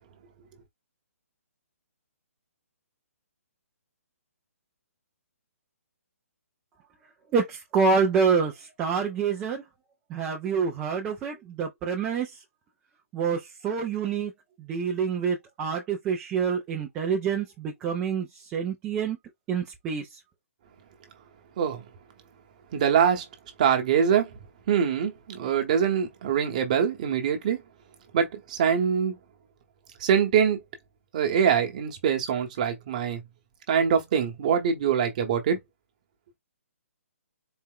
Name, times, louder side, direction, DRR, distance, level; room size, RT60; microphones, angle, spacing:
voice 1, 7.3-8.5 8.8-9.6 10.1-12.3 13.1-14.3 14.7-18.3 18.5-19.2 19.5-20.0, right 5 dB, 10° right, 0.3 m, -26 dB
voice 2, 22.7-23.2 23.6-24.3 24.7-27.6 28.1-29.1 30.0-30.6 31.1-33.2 33.7-35.6, right 7 dB, 30° right, 0.9 m, -24 dB
4.3 x 2.1 x 3.6 m
hypercardioid pair, 170°, 8 cm